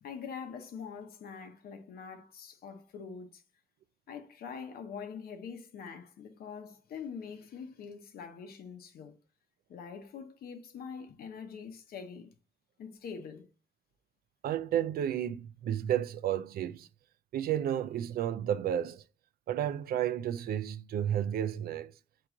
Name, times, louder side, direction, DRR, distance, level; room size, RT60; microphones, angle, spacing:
voice 1, 0.0-3.4 4.1-9.2 9.7-12.3 12.8-13.5, left 6 dB, 85° left, 0.9 m, -44 dB
voice 2, 14.4-16.9 17.3-19.0 19.5-21.9, right 10 dB, 80° right, 0.4 m, -32 dB
4.6 x 3.0 x 3.6 m
wide cardioid pair, 175°, 15 cm